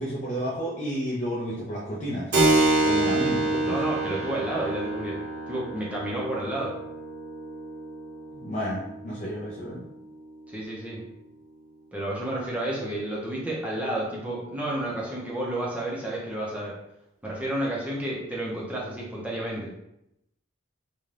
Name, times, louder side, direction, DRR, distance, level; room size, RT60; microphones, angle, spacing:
voice 1, 0.0-2.3 2.8-3.8 8.3-9.8, equal, 35° left, -7 dB, 0.5 m, -31 dB
Keyboard (musical), 2.3-10.5, right 2 dB, 55° right, 0.8 m, -27 dB
voice 2, 3.6-5.2 5.5-6.7 10.5-11.0 11.9-16.7 17.2-19.7, right 1 dB, 5° right, -5 dB, 0.6 m, -31 dB
2.6 x 2.3 x 3.2 m, 0.81 s
head